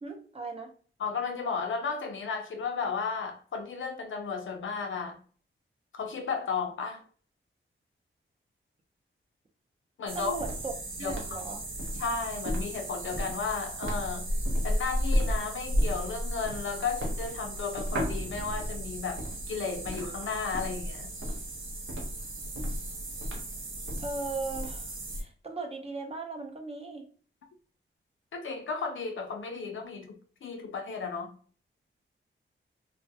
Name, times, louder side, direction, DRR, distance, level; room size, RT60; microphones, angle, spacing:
voice 1, 0.0-0.7 10.1-10.7 11.0-11.6 24.0-27.1, right 3 dB, 30° right, 0.5 m, -37 dB
voice 2, 1.0-5.2 5.9-7.0 10.0-10.3 11.0-11.2 12.0-14.3 14.6-21.1 28.3-31.3, left 5 dB, 70° left, 0.4 m, -34 dB
sound 1, 10.1-25.2, equal, 70° right, 0.7 m, -33 dB
2.2 x 2.1 x 2.6 m
cardioid pair, 75°, 21 cm